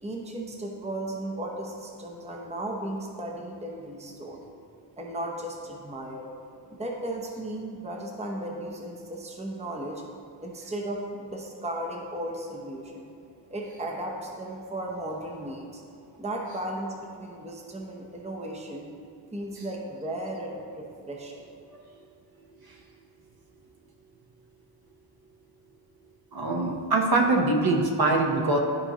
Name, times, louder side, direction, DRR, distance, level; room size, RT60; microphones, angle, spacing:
voice 1, 0.0-4.4 5.0-6.3 6.7-10.0 10.4-13.1 13.5-15.8 16.2-18.9 19.3-21.4, right 1 dB, 15° right, 0 dB, 0.9 m, -35 dB
voice 2, 26.3-28.6, right 2 dB, 50° right, 1 dB, 1.1 m, -23 dB
12.5 x 4.5 x 3.0 m, 2.5 s
cardioid pair, 90°, 47 cm